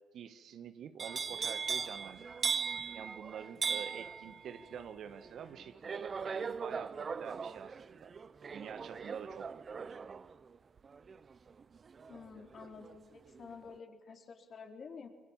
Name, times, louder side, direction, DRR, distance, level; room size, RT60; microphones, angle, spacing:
voice 1, 0.1-2.4 2.9-8.1 8.5-9.9, right 8 dB, 65° right, 11 dB, 1.6 m, -47 dB
sound 1, 1.0-13.0 13.3-13.7, right 5 dB, 45° right, 0.8 m, -39 dB
voice 2, 12.1-15.1, left 5 dB, 55° left, 3 dB, 4.2 m, -50 dB
28.5 x 23.5 x 7.4 m, 1.4 s
hypercardioid pair, 55°, 0 cm